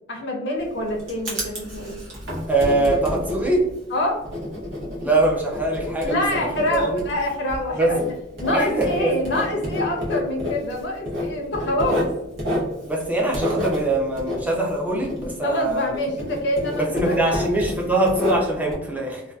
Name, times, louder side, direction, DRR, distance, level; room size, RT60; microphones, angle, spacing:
voice 1, 0.1-2.0 3.9-4.2 6.0-8.0 8.4-12.1 15.4-17.6, left 1 dB, 60° left, 1 dB, 0.5 m, -26 dB
Writing, 0.6-15.9 16.2-18.7, left 1 dB, 85° right, 0.9 m, -29 dB
voice 2, 2.5-3.7 5.0-7.0 7.8-7.9 8.5-9.1 12.8-16.0 16.8-19.2, right 2 dB, 10° right, -2 dB, 0.4 m, -23 dB
2.6 x 2.2 x 2.2 m, 0.90 s
head